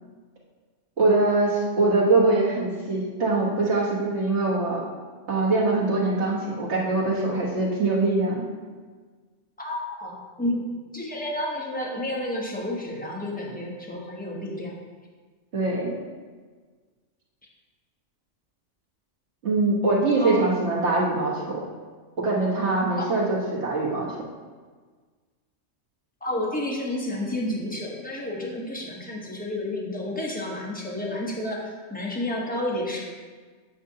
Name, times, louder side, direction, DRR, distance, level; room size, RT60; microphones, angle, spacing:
voice 1, 1.0-4.8 5.3-8.4 15.5-16.0 19.4-21.6 22.2-24.1, right 2 dB, 60° right, -4 dB, 1.6 m, -23 dB
voice 2, 9.6-10.6 10.9-14.8 20.2-20.4 23.0-23.1 26.2-33.0, left 1 dB, 5° left, -3 dB, 1.0 m, -30 dB
8.6 x 5.9 x 2.8 m, 1.5 s
omnidirectional pair, 1.3 m